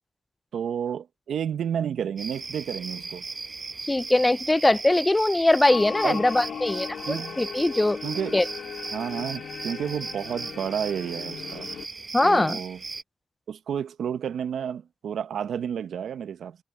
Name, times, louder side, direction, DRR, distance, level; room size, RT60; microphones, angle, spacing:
voice 1, 0.5-3.2 6.0-6.2 7.1-7.4 8.0-8.3 8.9-11.7 12.2-12.8 13.5-16.6, right 8 dB, 80° right, 1.0 m, -31 dB
sound 1, 2.2-13.0, right 4 dB, 45° right, 1.2 m, -38 dB
voice 2, 3.9-8.0 8.3-8.5 12.1-12.6, left 2 dB, 20° left, 0.6 m, -21 dB
sound 2, 5.7-11.9, left 7 dB, 75° left, 2.6 m, -37 dB
supercardioid pair, 50°, 0 cm